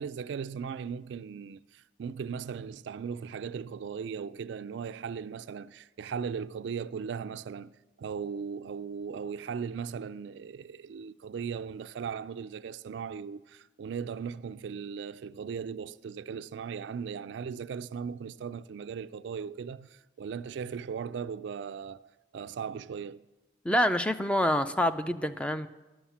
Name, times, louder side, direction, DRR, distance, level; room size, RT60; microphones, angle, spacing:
voice 1, 0.0-23.2, right 6 dB, 65° right, 0.3 m, -38 dB
voice 2, 23.6-25.7, left 1 dB, 5° left, 0.4 m, -26 dB
12.0 x 7.2 x 7.2 m
head